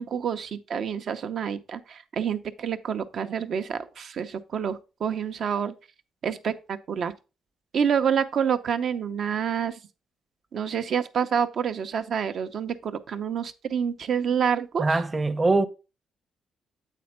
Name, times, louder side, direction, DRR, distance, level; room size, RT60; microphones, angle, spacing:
voice 1, 0.0-5.7 6.2-7.1 7.7-9.8 10.5-14.8, right 7 dB, 60° right, 0.7 m, -28 dB
voice 2, 14.8-15.7, right 3 dB, 25° right, 0.8 m, -22 dB
8.4 x 4.3 x 4.4 m
cardioid pair, 90°, 0 cm